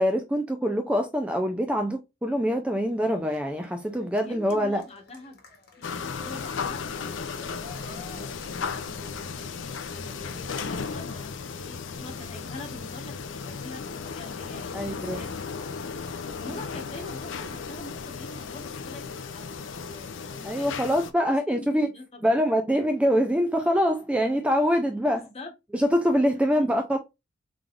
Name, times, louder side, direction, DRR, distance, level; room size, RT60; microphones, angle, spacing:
voice 1, 0.0-4.8 14.7-15.2 20.4-21.9 22.2-25.2 25.7-27.0, equal, 5° right, 0.4 m, -24 dB
Cheering, 2.7-9.8, left 2 dB, 55° left, 1.1 m, -49 dB
voice 2, 4.2-5.4 5.8-15.4 16.4-22.4 25.1-25.5 26.5-26.6, left 2 dB, 35° left, 1.1 m, -45 dB
sound 1, 5.8-21.1, left 5 dB, 75° left, 0.5 m, -35 dB
3.6 x 3.4 x 2.4 m
head